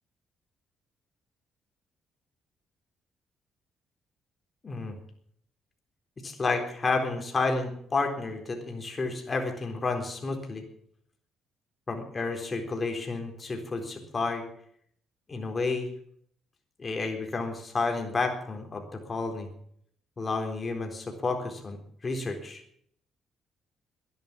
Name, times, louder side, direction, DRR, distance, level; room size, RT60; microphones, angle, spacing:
voice 1, 6.2-10.6 11.9-14.4 15.3-15.9 16.8-19.5 20.2-21.8 22.0-22.6, left 3 dB, 30° left, 3 dB, 4.0 m, -31 dB
12.0 x 10.5 x 8.5 m, 0.65 s
cardioid pair, 90°, 0 cm